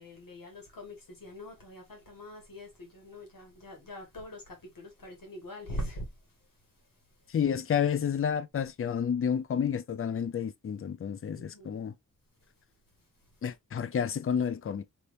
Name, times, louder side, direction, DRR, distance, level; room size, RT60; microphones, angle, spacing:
voice 1, 0.0-6.1 11.3-11.8 13.9-14.1, equal, 80° left, 1.5 m, -43 dB
voice 2, 7.3-11.9 13.4-14.8, left 7 dB, 40° left, 0.4 m, -30 dB
3.3 x 2.8 x 2.5 m
wide cardioid pair, 55°, 33 cm